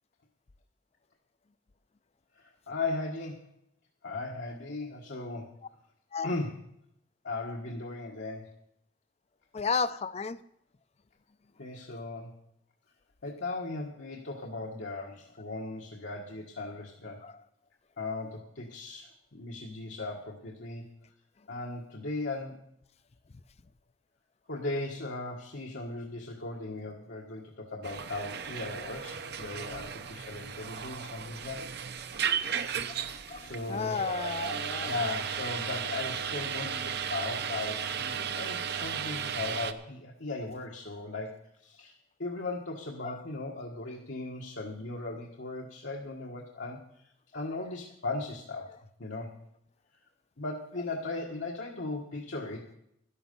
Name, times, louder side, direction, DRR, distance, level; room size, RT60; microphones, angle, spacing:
voice 1, 2.3-3.5 4.0-5.6 6.2-6.6 7.2-8.6 11.6-12.3 13.2-17.2 18.0-20.9 21.5-22.6 24.5-31.6 33.4-33.9 34.8-41.9 42.2-46.8 47.3-48.7 49.0-49.3 50.4-52.7, left 2 dB, 85° left, -2 dB, 1.6 m, -37 dB
voice 2, 9.5-10.4 17.2-17.3 32.9-34.9 43.0-43.2, left 5 dB, 35° left, 14 dB, 0.5 m, -33 dB
sound 1, 27.8-39.7, right 7 dB, 60° right, 0.7 m, -35 dB
12.5 x 12.0 x 5.4 m, 0.76 s
head